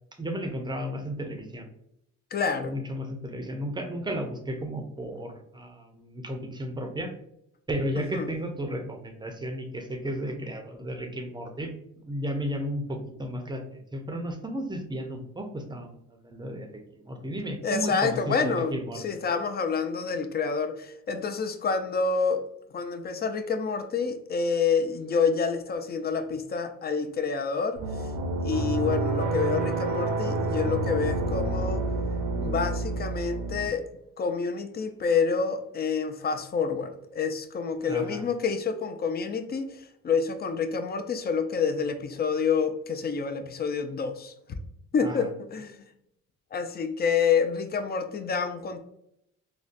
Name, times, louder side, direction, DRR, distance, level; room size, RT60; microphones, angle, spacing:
voice 1, 0.2-1.7 2.6-7.1 7.7-11.7 12.0-16.7 16.9-19.0 37.8-38.2 45.0-45.2, equal, 15° right, 4 dB, 0.5 m, -34 dB
voice 2, 2.3-2.7 8.0-8.3 17.6-22.4 22.7-27.8 28.4-31.8 32.4-33.8 34.2-44.3 44.9-45.8 46.5-48.8, left 5 dB, 35° left, 7 dB, 0.4 m, -28 dB
sound 1, 27.8-33.7, right 2 dB, 75° right, 0.6 m, -28 dB
3.8 x 2.1 x 2.5 m, 0.77 s
cardioid pair, 90°, 30 cm